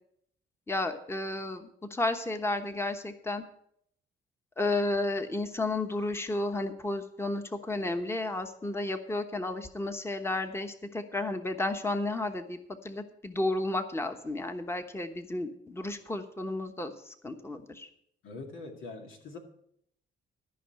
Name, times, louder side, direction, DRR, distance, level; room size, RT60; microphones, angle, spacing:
voice 1, 0.7-3.4 4.6-17.9, left 2 dB, 10° left, 7 dB, 1.1 m, -32 dB
voice 2, 18.2-19.4, left 3 dB, 90° left, 3 dB, 2.1 m, -43 dB
13.5 x 5.4 x 7.7 m, 0.71 s
cardioid pair, 90°, 20 cm